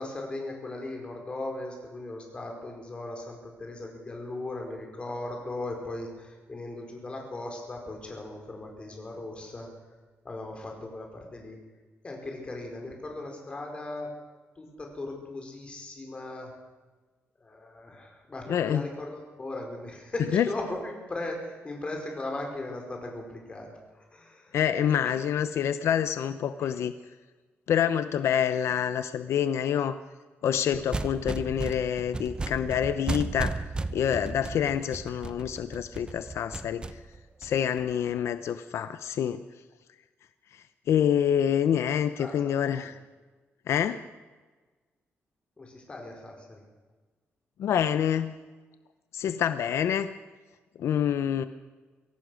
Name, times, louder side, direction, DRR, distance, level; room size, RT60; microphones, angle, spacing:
voice 1, 0.0-9.7 10.2-11.6 12.0-14.1 14.6-16.5 17.4-23.7 23.9-24.6 25.0-25.2 26.6-26.7 42.2-42.8 45.6-46.6, left 2 dB, 25° left, 1 dB, 4.9 m, -38 dB
voice 2, 18.5-18.9 20.3-20.5 24.5-26.9 27.7-30.0 30.4-33.6 33.9-36.9 37.4-39.4 40.5-43.0 43.7-44.0 47.6-48.3 49.1-50.1 50.8-51.4, left 9 dB, 80° left, 11 dB, 0.8 m, -27 dB
sound 1, 30.7-38.1, right 3 dB, 20° right, 0.9 m, -35 dB
24.0 x 17.0 x 6.4 m, 1.3 s
wide cardioid pair, 165°, 5 cm